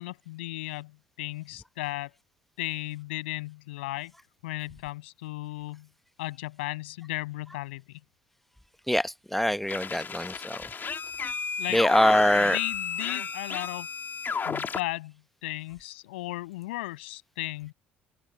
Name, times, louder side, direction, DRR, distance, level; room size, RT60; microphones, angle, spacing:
voice 1, 0.0-2.1 2.6-4.1 4.4-5.9 6.2-8.0 11.6-11.8 12.4-13.9 14.5-15.2 15.4-17.7, left 19 dB, 75° left, 7.1 m, -35 dB
voice 2, 8.9-10.6 11.7-12.6, equal, 5° left, 1.1 m, -24 dB
sound 1, 9.7-14.8, left 5 dB, 35° left, 2.7 m, -33 dB
open air
hypercardioid pair, 60°, 6 cm